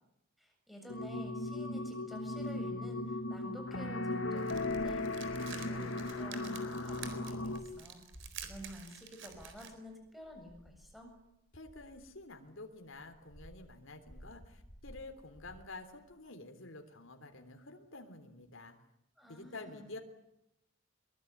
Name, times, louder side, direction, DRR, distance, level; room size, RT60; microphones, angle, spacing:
voice 1, 0.4-8.1 8.4-11.2 19.2-19.9, equal, ahead, 3 dB, 7.4 m, -50 dB
sound 1, 0.9-7.6, left 2 dB, 80° left, 2.5 m, -37 dB
sound 2, 4.4-9.7, right 8 dB, 60° right, 4.2 m, -50 dB
sound 3, 5.0-12.4 12.7-16.1, equal, 40° left, 7.6 m, -56 dB
voice 2, 11.5-18.8 19.3-20.0, left 2 dB, 65° left, 5 dB, 3.4 m, -49 dB
23.5 x 23.0 x 9.8 m, 0.81 s
head